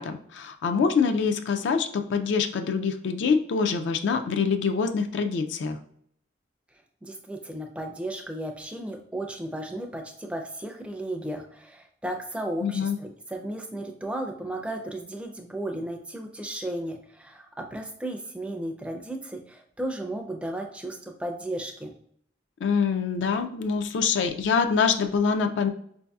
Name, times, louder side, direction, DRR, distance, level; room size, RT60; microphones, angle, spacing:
voice 1, 0.0-5.8 12.6-13.0 22.6-25.7, left 5 dB, 65° left, 7 dB, 0.3 m, -25 dB
voice 2, 7.0-21.9, right 1 dB, 5° right, 3 dB, 0.4 m, -34 dB
4.6 x 2.6 x 2.2 m, 0.67 s
head